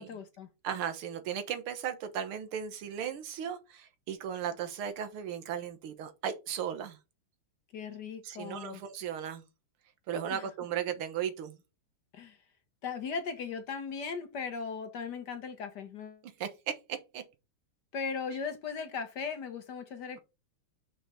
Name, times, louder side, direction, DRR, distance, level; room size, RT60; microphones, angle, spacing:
voice 1, 0.0-0.5 7.7-8.8 10.3-10.5 12.1-12.4 12.8-16.2 17.9-20.2, left 5 dB, 60° left, 1.3 m, -38 dB
voice 2, 0.6-7.0 8.2-9.4 10.1-11.6 16.4-17.2, right 8 dB, 80° right, 2.0 m, -36 dB
5.8 x 5.1 x 4.1 m
omnidirectional pair, 2.4 m